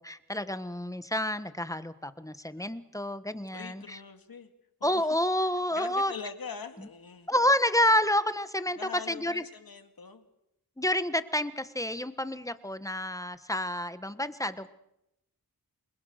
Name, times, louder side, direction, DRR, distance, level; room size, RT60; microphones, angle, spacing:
voice 1, 0.0-4.0 4.8-6.1 7.3-8.8 9.1-9.4 10.8-14.7, left 1 dB, 10° left, 12 dB, 1.3 m, -29 dB
voice 2, 3.5-4.5 4.8-7.3 8.8-10.3, left 6 dB, 70° left, 7 dB, 2.3 m, -43 dB
28.0 x 20.5 x 6.6 m, 0.85 s
wide cardioid pair, 65°, 36 cm